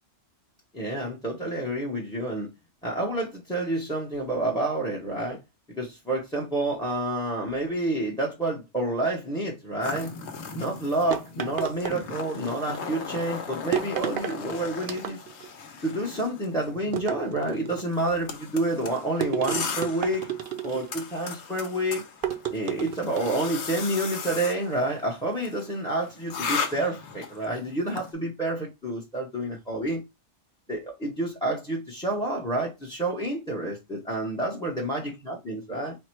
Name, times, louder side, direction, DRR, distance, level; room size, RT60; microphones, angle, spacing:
voice 1, 0.7-2.5 2.8-5.4 5.7-10.1 10.5-15.2 15.8-20.3 20.6-22.0 22.5-30.0 30.7-36.0, right 1 dB, 5° left, 0.7 m, -29 dB
sound 1, 9.8-28.1, left 5 dB, 65° left, 1.0 m, -37 dB
sound 2, 11.1-12.5 13.7-14.4 14.8-15.5 16.9-17.8 19.2-21.0 22.2-23.5, right 9 dB, 60° right, 0.6 m, -32 dB
4.2 x 2.2 x 4.4 m
omnidirectional pair, 1.3 m